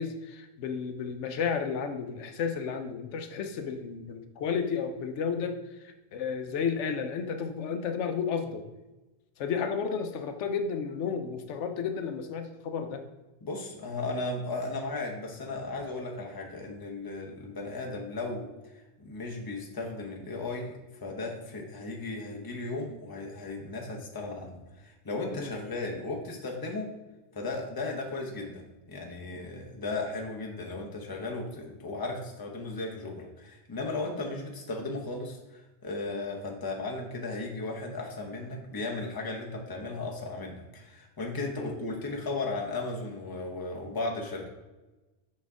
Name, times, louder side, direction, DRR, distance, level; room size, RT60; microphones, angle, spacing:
voice 1, 0.0-8.6 9.4-13.0 25.3-25.5 41.6-41.7, left 6 dB, 90° left, 7 dB, 0.9 m, -32 dB
voice 2, 13.4-18.5 19.0-26.9 27.3-44.5, left 2 dB, 20° left, 0 dB, 0.8 m, -36 dB
6.1 x 4.3 x 3.6 m, 1.1 s
omnidirectional pair, 1.2 m